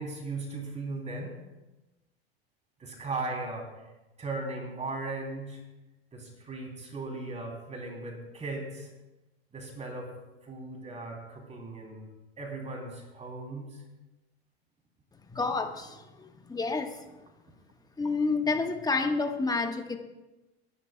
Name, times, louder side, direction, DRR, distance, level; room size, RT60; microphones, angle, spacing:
voice 1, 0.0-1.4 2.8-3.9 4.2-5.6 6.1-8.9 9.5-10.1 10.4-12.1 12.4-13.8, right 2 dB, 20° right, 1 dB, 3.2 m, -37 dB
voice 2, 15.3-17.0 18.0-20.0, left 3 dB, 10° left, 6 dB, 1.3 m, -29 dB
26.5 x 11.5 x 2.3 m, 1.1 s
hypercardioid pair, 90°, 32 cm